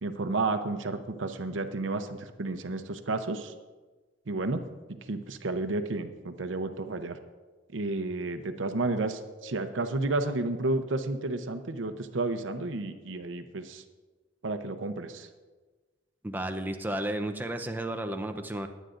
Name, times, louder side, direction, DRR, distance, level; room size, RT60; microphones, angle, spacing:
voice 1, 0.0-3.5 4.3-4.6 4.9-7.2 7.7-13.8 14.4-15.3, right 2 dB, 80° right, 8 dB, 0.8 m, -31 dB
voice 2, 16.2-18.7, right 1 dB, 10° right, 6 dB, 0.6 m, -33 dB
21.0 x 9.1 x 2.6 m, 1.3 s
head